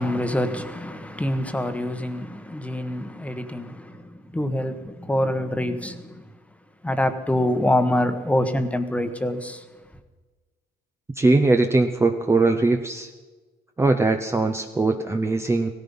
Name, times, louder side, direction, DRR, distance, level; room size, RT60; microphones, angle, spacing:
voice 1, 0.0-6.3 6.8-9.6, left 1 dB, 10° left, 1.2 m, -25 dB
voice 2, 11.2-13.1 13.8-15.7, right 3 dB, 15° right, 0.8 m, -20 dB
17.0 x 14.5 x 5.5 m
cardioid pair, 110°, 17 cm